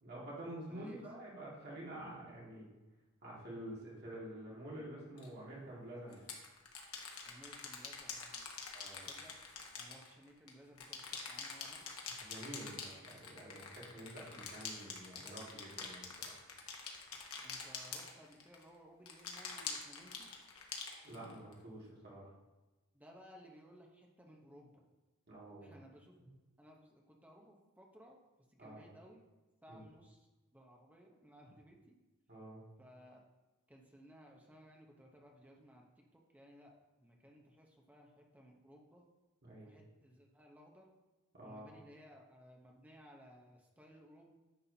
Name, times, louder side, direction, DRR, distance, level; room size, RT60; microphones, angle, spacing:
voice 1, 0.0-2.7 3.2-6.2 8.7-9.1 12.1-16.4 21.0-22.3 25.3-25.7 28.6-28.8 29.7-29.9 32.3-32.6 39.4-39.7 41.3-41.7, right 1 dB, 50° right, -6 dB, 2.1 m, -49 dB
voice 2, 0.7-1.1 7.2-8.5 9.0-9.4 9.8-11.9 17.4-20.3 22.9-24.8 25.6-26.2 26.6-29.2 29.6-32.0 32.8-33.2 33.7-39.1 39.6-40.9 41.4-44.4, equal, 5° right, 0 dB, 0.8 m, -59 dB
sound 1, 5.2-5.3 6.1-10.5 10.8-18.6 19.1-21.5, left 5 dB, 80° left, 1.1 m, -46 dB
9.9 x 5.7 x 2.8 m, 1.1 s
head